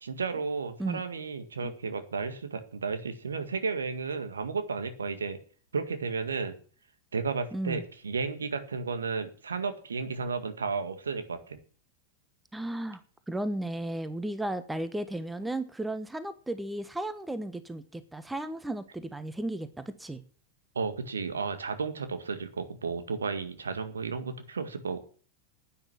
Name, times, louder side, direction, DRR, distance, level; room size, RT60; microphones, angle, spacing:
voice 1, 0.0-5.4 5.7-6.5 7.1-11.6 20.8-25.0, right 4 dB, 70° right, 9 dB, 1.8 m, -33 dB
voice 2, 7.5-7.8 12.5-13.0 13.3-20.2, right 1 dB, 5° right, 12 dB, 1.2 m, -34 dB
10.5 x 9.6 x 8.7 m, 0.43 s
figure-of-eight pair, 90°, 0 cm